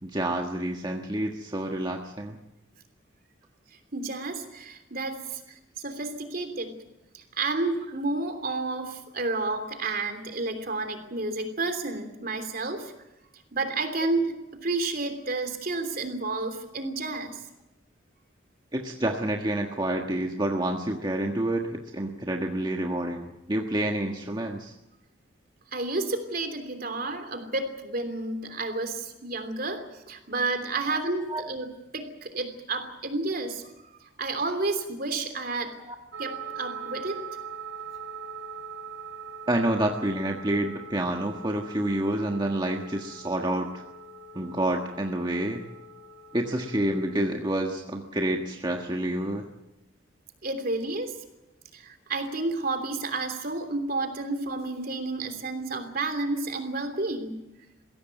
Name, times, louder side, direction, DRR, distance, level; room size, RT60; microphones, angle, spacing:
voice 1, 0.0-2.4 18.7-24.7 30.9-31.0 31.3-31.4 35.8-35.9 39.5-43.8 44.3-45.6 46.3-49.5, right 1 dB, 20° right, 2 dB, 1.5 m, -28 dB
voice 2, 3.9-6.8 7.1-12.9 13.5-14.4 14.6-17.4 25.7-33.7 34.2-35.8 36.2-37.2 50.4-51.1 51.7-57.4, right 3 dB, 50° right, 8 dB, 3.2 m, -31 dB
sound 1, 36.1-47.2, right 5 dB, 70° right, 1.8 m, -42 dB
22.0 x 16.5 x 9.2 m, 0.94 s
head